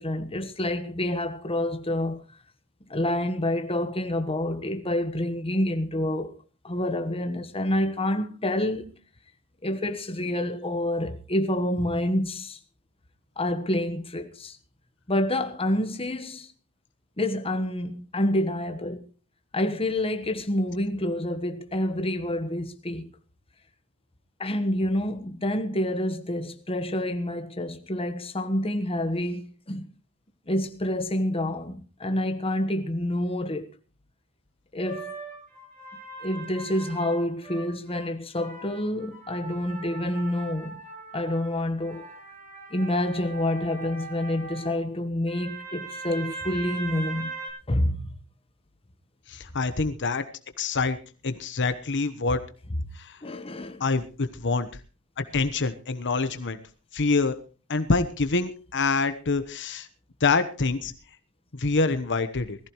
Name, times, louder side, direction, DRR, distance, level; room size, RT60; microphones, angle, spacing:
voice 1, 0.0-2.2 2.9-6.3 6.6-8.9 9.6-12.6 13.4-14.6 15.1-16.5 17.2-19.1 19.5-23.1 24.4-29.9 30.5-33.6 34.7-35.1 36.2-40.8 41.1-42.1 42.7-47.3 47.7-48.1 53.2-53.8, left 1 dB, 25° left, 1.3 m, -28 dB
sound 1, 34.8-38.1 38.3-44.7 45.3-47.5, right 3 dB, 35° right, 7.5 m, -40 dB
voice 2, 49.3-50.2 50.6-51.0 51.2-52.4 53.0-53.2 53.8-54.7 55.2-56.6 56.9-57.3 57.7-59.9 60.2-60.9 61.5-62.6, left 3 dB, 55° left, 1.1 m, -26 dB
20.5 x 15.0 x 3.2 m
head